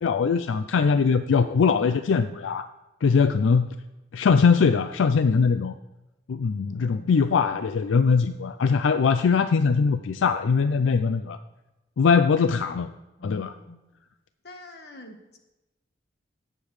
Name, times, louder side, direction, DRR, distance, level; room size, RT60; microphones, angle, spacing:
voice 1, 0.0-2.7 3.0-3.7 4.1-5.7 6.3-11.4 12.0-12.9 13.2-13.5, left 5 dB, 85° left, 10 dB, 0.4 m, -21 dB
voice 2, 6.7-7.1 13.2-13.8 14.4-15.4, left 2 dB, 55° left, 4 dB, 1.3 m, -45 dB
17.0 x 6.9 x 3.2 m, 1.0 s
head